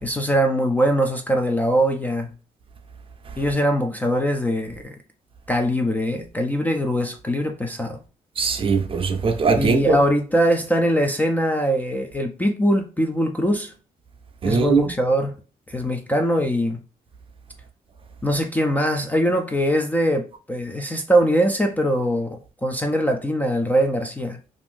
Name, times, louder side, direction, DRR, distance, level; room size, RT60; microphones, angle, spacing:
voice 1, 0.0-2.3 3.4-5.0 5.5-8.0 9.6-13.7 14.5-15.3 15.7-16.8 18.2-24.4, equal, 10° left, 0.3 m, -22 dB
voice 2, 8.4-10.0 14.4-14.8, right 4 dB, 35° right, 0.5 m, -20 dB
2.5 x 2.5 x 3.6 m
cardioid pair, 140°, 15 cm